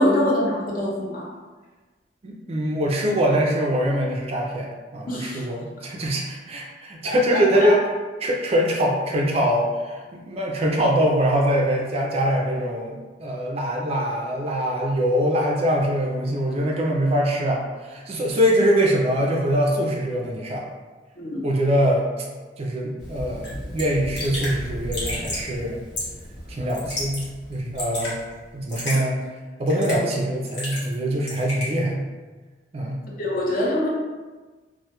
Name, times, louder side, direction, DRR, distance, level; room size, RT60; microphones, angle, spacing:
voice 1, 0.0-1.3 5.1-5.4 7.0-7.8 21.2-21.5 33.2-33.9, left 1 dB, 50° left, -4 dB, 0.5 m, -24 dB
voice 2, 2.2-7.8 8.2-20.7 21.4-22.0 22.6-25.8 26.5-28.2 28.5-29.2 29.6-32.0 32.7-33.0, equal, 35° right, -1 dB, 0.3 m, -23 dB
Thunder, 23.0-28.8, equal, 5° right, 0.7 m, -38 dB
Raindrop / Drip, 23.4-23.5 23.8-23.9 24.2-24.5 24.9-25.5 26.0-26.2 26.7-27.2 27.5-28.1 28.7-29.0 29.7-30.1 30.5-31.0 31.3-31.7, left 1 dB, 75° left, 1.0 m, -31 dB
2.1 x 2.1 x 2.8 m, 1.3 s
head